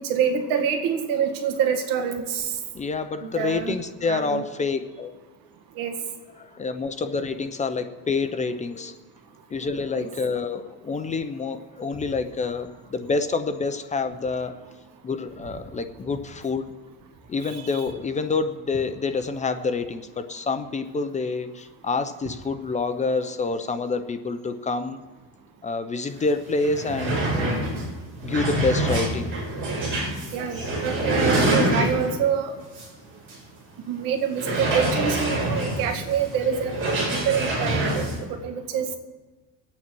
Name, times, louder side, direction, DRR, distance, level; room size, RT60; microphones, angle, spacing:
voice 1, 0.0-2.6 3.2-3.8 4.1-4.4 5.8-5.9 9.9-10.1 17.5-17.7 30.3-32.6 33.9-36.8 37.1-38.9, right 7 dB, 80° right, 6 dB, 1.9 m, -26 dB
voice 2, 2.7-5.1 6.4-8.9 9.5-14.6 15.0-16.7 17.3-25.0 25.6-27.7 28.2-29.4 31.2-31.3, left 4 dB, 20° left, 9 dB, 0.7 m, -27 dB
sound 1, 26.2-26.3 26.5-32.2 32.7-32.9 33.3-33.4 34.3-38.2, right 1 dB, 35° right, 5.7 m, -26 dB
23.0 x 8.7 x 4.6 m, 1.2 s
cardioid pair, 140°, 33 cm